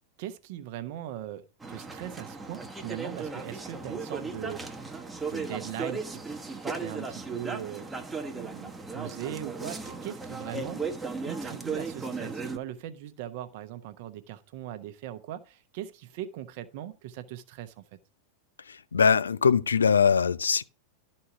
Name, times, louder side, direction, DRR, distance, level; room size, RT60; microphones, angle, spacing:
voice 1, 0.2-4.6 5.3-7.9 8.3-10.8 11.2-18.0, right 11 dB, 50° right, 1.0 m, -40 dB
sound 1, 1.6-12.6, right 4 dB, 10° right, 1.1 m, -36 dB
voice 2, 18.7-20.6, left 6 dB, 70° left, 0.5 m, -22 dB
12.5 x 4.3 x 5.8 m
figure-of-eight pair, 90°, 0 cm